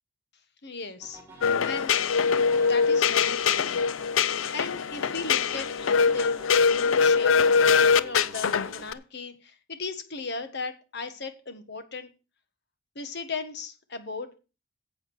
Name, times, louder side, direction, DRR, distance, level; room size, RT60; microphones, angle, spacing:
voice 1, 0.6-1.2 1.6-2.0 2.6-3.7 4.5-12.1 12.9-14.4, left 4 dB, 55° left, 9 dB, 1.6 m, -37 dB
sound 1, 1.0-8.9, right 2 dB, 10° right, 2.8 m, -48 dB
sound 2, 1.4-8.9, left 6 dB, 70° left, 0.5 m, -23 dB
8.8 x 7.8 x 6.2 m, 0.33 s
head